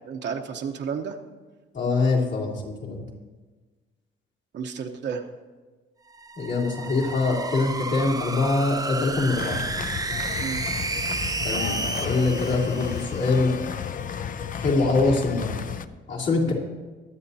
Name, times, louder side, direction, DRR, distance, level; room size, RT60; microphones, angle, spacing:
voice 1, 0.0-1.2 4.5-5.3 10.4-10.6 16.5-16.6, right 6 dB, 60° right, 3 dB, 0.9 m, -31 dB
voice 2, 1.7-3.0 6.4-9.6 11.4-13.5 14.6-15.6 16.1-16.5, left 3 dB, 65° left, -4 dB, 3.1 m, -24 dB
sound 1, 6.1-13.6, right 3 dB, 20° right, 0.7 m, -32 dB
sound 2, 9.4-15.9, left 7 dB, 45° left, 0.5 m, -33 dB
23.5 x 8.3 x 2.8 m, 1.3 s
cardioid pair, 90°, 20 cm